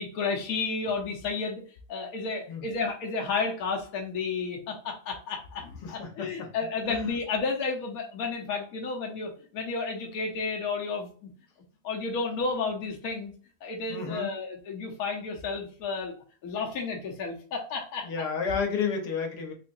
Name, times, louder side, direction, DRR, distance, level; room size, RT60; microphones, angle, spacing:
voice 1, 0.0-1.6 1.9-11.3 11.8-13.3 13.6-16.1 16.4-18.1, left 4 dB, 70° left, 0 dB, 1.3 m, -32 dB
voice 2, 5.8-6.5 6.9-7.1 13.9-14.3 18.0-19.5, left 5 dB, 85° left, 2 dB, 1.5 m, -31 dB
3.8 x 3.3 x 2.6 m, 0.42 s
omnidirectional pair, 1.7 m